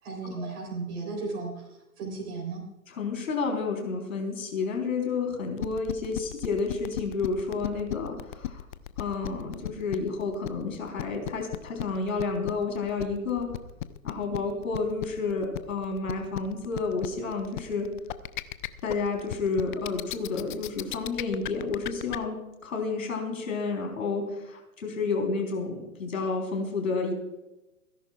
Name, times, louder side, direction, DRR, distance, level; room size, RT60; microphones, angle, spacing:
voice 1, 0.0-1.7 2.0-2.6, right 3 dB, 50° right, -2 dB, 3.8 m, -35 dB
voice 2, 2.9-8.6 9.0-13.5 14.0-17.9 18.8-27.1, left 4 dB, 65° left, 2 dB, 3.9 m, -30 dB
sound 1, 5.6-22.2, left 14 dB, 35° left, 0.5 m, -34 dB
29.0 x 11.0 x 2.4 m, 0.99 s
figure-of-eight pair, 110°, 43 cm